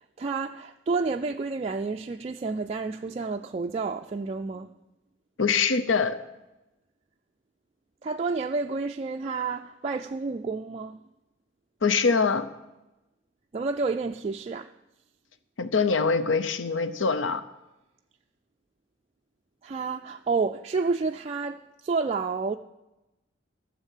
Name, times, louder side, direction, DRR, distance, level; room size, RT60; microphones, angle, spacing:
voice 1, 0.2-4.7 8.0-11.0 13.5-14.7 19.6-22.6, right 4 dB, 35° right, 0.3 m, -30 dB
voice 2, 5.4-6.2 11.8-12.5 15.6-17.4, left 5 dB, 85° left, 0.7 m, -24 dB
13.5 x 7.3 x 7.3 m
head